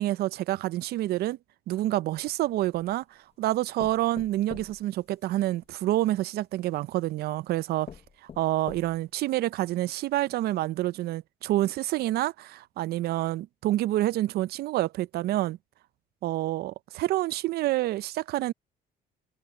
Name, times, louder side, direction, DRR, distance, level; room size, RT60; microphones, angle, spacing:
voice 1, 0.0-1.4 1.7-3.0 3.4-7.9 8.4-15.6 16.2-18.5, right 15 dB, 70° right, 0.5 m, -28 dB
sound 1, 2.1-3.0 3.8-5.8 6.7-6.8 7.4-7.5 7.9-9.2 9.7-9.8 10.1-10.2, left 7 dB, 35° left, 1.0 m, -46 dB
cardioid pair, 110°, 17 cm